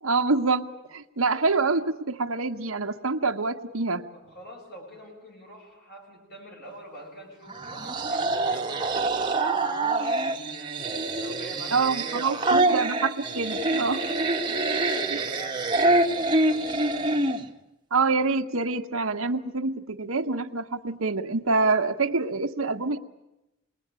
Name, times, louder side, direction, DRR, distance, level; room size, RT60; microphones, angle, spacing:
voice 1, 0.0-4.1 11.7-14.0 17.9-23.0, right 3 dB, 80° right, 4 dB, 1.3 m, -26 dB
voice 2, 4.1-10.8 11.2-12.7 14.4-17.3, equal, 50° left, 0 dB, 7.3 m, -45 dB
sound 1, 7.5-17.5, right 2 dB, 20° right, 1.4 m, -26 dB
27.5 x 21.0 x 8.9 m, 0.92 s
head